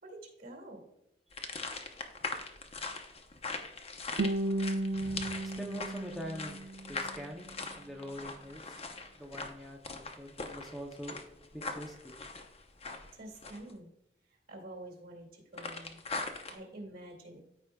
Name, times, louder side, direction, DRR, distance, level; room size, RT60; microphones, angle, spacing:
voice 1, 0.0-0.9 13.1-13.9 14.2-17.4, right 1 dB, 55° right, 0 dB, 2.2 m, -48 dB
sound 1, 1.3-13.7 15.6-16.6, left 3 dB, 35° left, 0.7 m, -41 dB
Guitar, 4.2-7.2, right 1 dB, 90° right, 0.5 m, -34 dB
voice 2, 4.9-6.6 6.9-9.8 10.2-11.2 11.5-12.2, equal, ahead, -1 dB, 0.6 m, -44 dB
13.5 x 4.9 x 2.3 m, 0.84 s
head